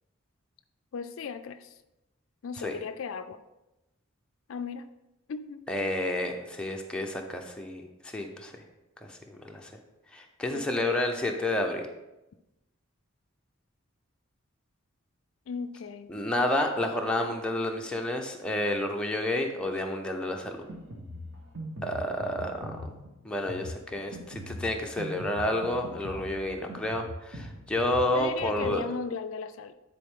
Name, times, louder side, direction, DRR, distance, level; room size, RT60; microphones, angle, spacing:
voice 1, 0.9-1.7 2.4-3.4 4.5-4.9 5.3-5.7 10.5-10.8 15.5-16.1 28.1-29.7, left 5 dB, 70° left, 10 dB, 0.4 m, -36 dB
voice 2, 5.7-8.5 9.1-9.7 10.1-11.9 16.1-20.6 21.8-22.9 23.2-28.8, left 1 dB, 5° left, 1 dB, 0.7 m, -30 dB
Drum kit, 20.5-28.8, equal, 60° right, 1.3 m, -41 dB
9.8 x 4.2 x 3.7 m, 0.96 s
head